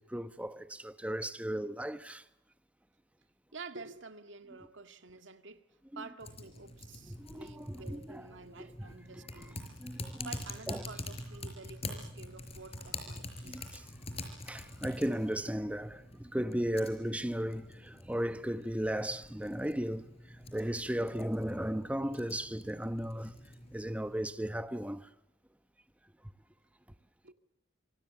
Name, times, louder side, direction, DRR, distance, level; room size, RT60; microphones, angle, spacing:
voice 1, 0.1-2.2 5.9-6.0 7.1-8.2 8.6-8.9 9.8-10.3 10.7-10.8 13.5-13.6 14.5-20.0 20.5-23.3 23.7-25.0, equal, 5° right, 0.9 m, -35 dB
voice 2, 3.5-5.7 6.0-9.6 10.2-13.7 27.2-27.3, right 4 dB, 80° right, 1.9 m, -49 dB
Typing, 6.2-24.2, left 2 dB, 35° left, 4.9 m, -46 dB
26.5 x 24.5 x 7.0 m
head